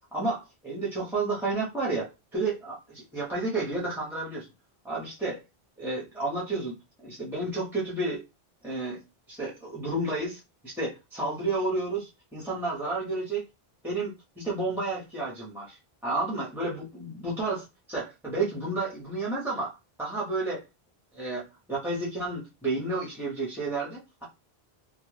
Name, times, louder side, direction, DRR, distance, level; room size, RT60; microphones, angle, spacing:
voice 1, 0.1-4.5 4.8-5.4 5.8-6.7 7.0-8.2 8.6-9.0 9.3-13.4 13.8-15.8 16.0-19.7 20.0-20.6 21.1-24.2, right 2 dB, 5° right, -6 dB, 0.6 m, -31 dB
2.2 x 2.1 x 3.2 m, 0.26 s
omnidirectional pair, 1.0 m